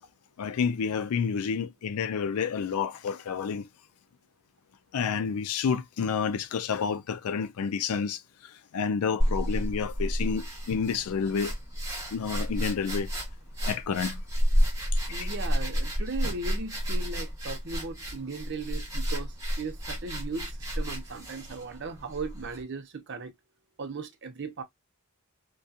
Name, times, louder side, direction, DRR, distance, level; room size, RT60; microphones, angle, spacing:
voice 1, 0.4-3.7 4.9-8.2 8.7-11.5 12.1-13.1 13.7-14.2 15.2-15.3, left 6 dB, 85° left, 0.4 m, -29 dB
sound 1, 9.2-22.6, equal, 15° right, 1.1 m, -31 dB
voice 2, 15.1-23.3 23.8-24.6, right 4 dB, 50° right, 0.6 m, -37 dB
2.7 x 2.2 x 2.3 m
head